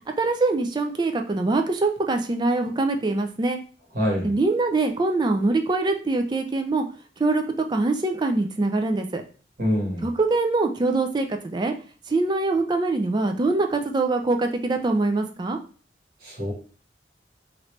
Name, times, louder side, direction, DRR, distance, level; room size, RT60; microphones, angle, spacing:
voice 1, 0.2-3.6 4.2-6.8 7.2-7.4 7.7-9.2 10.0-11.7 12.1-15.6, right 3 dB, 25° right, 6 dB, 0.3 m, -23 dB
voice 2, 3.9-4.3 9.6-10.1 16.2-16.5, equal, 50° right, -2 dB, 1.3 m, -25 dB
3.0 x 2.6 x 3.2 m, 0.40 s
head